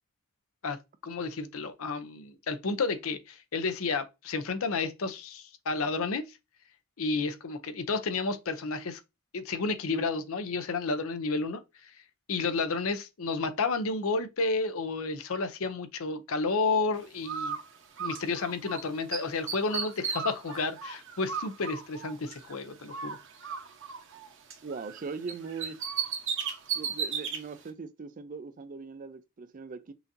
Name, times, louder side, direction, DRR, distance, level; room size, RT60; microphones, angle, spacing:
voice 1, 1.0-6.2 7.0-9.0 9.3-11.9 12.3-17.6 18.0-23.2, left 4 dB, 65° left, 0.6 m, -31 dB
Bird, 17.2-18.8 19.1-22.6 22.9-25.0 25.3-27.4, right 6 dB, 55° right, 0.9 m, -35 dB
voice 2, 24.6-25.8 26.7-29.9, right 4 dB, 35° right, 0.4 m, -40 dB
5.6 x 2.7 x 2.6 m
head